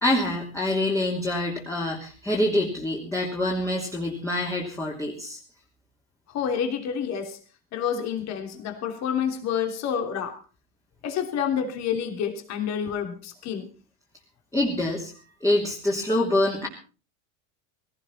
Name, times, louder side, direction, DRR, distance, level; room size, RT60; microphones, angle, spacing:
voice 1, 0.0-5.4 14.5-15.1 15.4-16.7, left 1 dB, 5° left, -3 dB, 3.2 m, -25 dB
voice 2, 6.3-7.4 7.7-10.4 11.0-13.7, left 8 dB, 45° left, 6 dB, 3.2 m, -28 dB
18.0 x 17.5 x 4.2 m, 0.37 s
cardioid pair, 150°, 39 cm